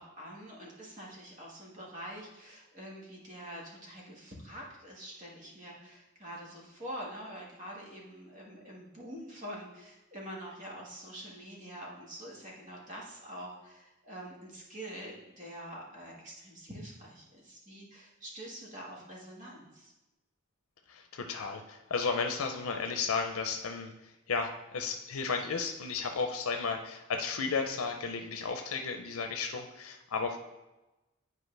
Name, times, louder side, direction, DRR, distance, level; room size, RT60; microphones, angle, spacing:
voice 1, 0.0-19.9, equal, 35° right, -3 dB, 1.5 m, -45 dB
voice 2, 20.9-23.9 24.3-30.4, left 5 dB, 85° left, 5 dB, 0.6 m, -33 dB
10.0 x 4.6 x 3.3 m, 1.0 s
head